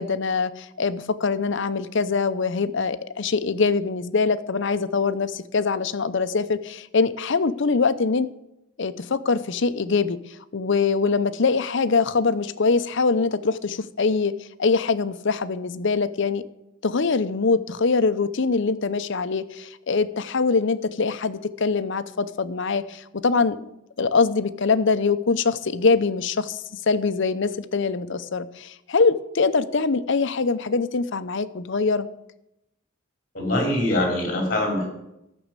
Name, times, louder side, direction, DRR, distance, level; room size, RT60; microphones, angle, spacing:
voice 1, 0.0-8.3 8.8-16.4 16.8-23.6 24.0-32.1, left 4 dB, 65° left, 13 dB, 0.7 m, -23 dB
voice 2, 33.3-34.9, left 1 dB, 45° left, 1 dB, 4.7 m, -23 dB
13.5 x 6.2 x 8.2 m, 0.86 s
head